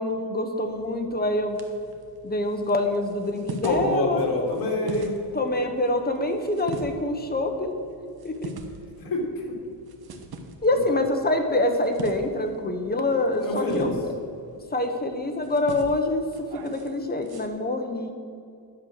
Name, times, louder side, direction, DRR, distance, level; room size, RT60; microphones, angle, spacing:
voice 1, 0.0-1.6 2.2-4.3 4.8-4.9 5.3-7.7 8.2-8.5 10.6-14.1 14.7-16.2 16.6-18.1, left 2 dB, 20° left, 4 dB, 1.1 m, -26 dB
sound 1, 0.6-17.5, right 2 dB, 60° right, 1.2 m, -43 dB
voice 2, 3.6-5.2 9.0-9.5 10.9-11.0 13.4-13.9, left 2 dB, 55° left, 0 dB, 2.6 m, -26 dB
11.0 x 7.5 x 6.5 m, 2.5 s
wide cardioid pair, 135°, 41 cm